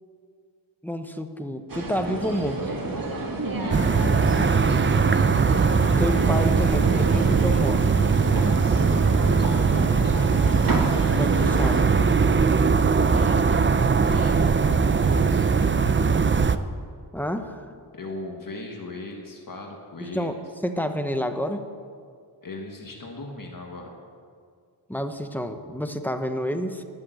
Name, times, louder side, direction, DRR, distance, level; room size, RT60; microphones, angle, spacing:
voice 1, 0.8-2.6 6.0-7.8 11.1-11.9 17.1-17.7 20.0-20.4 20.6-21.6 24.9-26.8, equal, 5° left, 6 dB, 0.9 m, -29 dB
sound 1, 1.7-11.8, right 2 dB, 45° right, 1.9 m, -30 dB
voice 2, 3.4-3.9 8.2-10.2 12.9-15.5 17.9-20.4 22.4-23.9, left 2 dB, 45° left, 0 dB, 1.6 m, -38 dB
sound 2, 3.7-16.6, right 5 dB, 25° right, 0.4 m, -20 dB
12.5 x 11.5 x 7.8 m, 2.1 s
wide cardioid pair, 140°, 46 cm